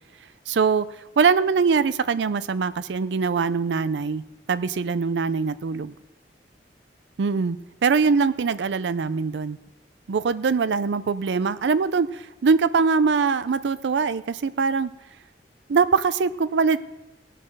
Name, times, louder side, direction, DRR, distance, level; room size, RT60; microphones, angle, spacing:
voice 1, 0.5-0.9 1.2-4.2 4.5-5.9 7.2-7.6 7.8-9.6 10.1-14.9 15.7-16.8, right 5 dB, 85° right, 14 dB, 0.4 m, -22 dB
17.5 x 7.5 x 6.5 m, 1.0 s
head